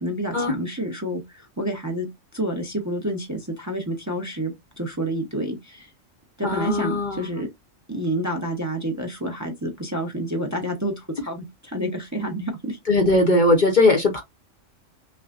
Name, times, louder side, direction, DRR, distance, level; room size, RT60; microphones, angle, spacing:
voice 1, 0.0-2.1 2.3-5.9 6.4-7.5 7.9-12.8, right 1 dB, 15° right, 0.7 m, -29 dB
voice 2, 6.4-7.3 12.9-14.2, left 2 dB, 45° left, 0.8 m, -19 dB
5.6 x 2.2 x 2.5 m
omnidirectional pair, 1.3 m